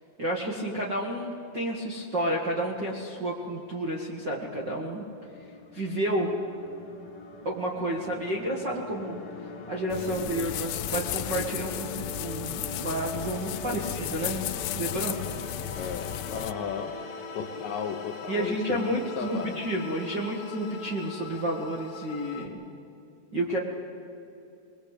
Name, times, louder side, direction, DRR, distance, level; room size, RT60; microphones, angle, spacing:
voice 1, 0.2-5.0 5.7-6.3 7.4-9.2 9.7-14.5 14.7-15.2 18.3-22.6 23.3-23.6, right 1 dB, 45° right, -3 dB, 1.5 m, -30 dB
sound 1, 4.1-22.5, left 3 dB, 40° left, 2.5 m, -41 dB
sound 2, 9.9-16.5, left 14 dB, 85° left, 2.9 m, -34 dB
voice 2, 15.7-17.0 17.4-19.6, left 7 dB, 70° left, 4 dB, 2.2 m, -35 dB
22.5 x 21.0 x 8.3 m, 2.6 s
omnidirectional pair, 4.9 m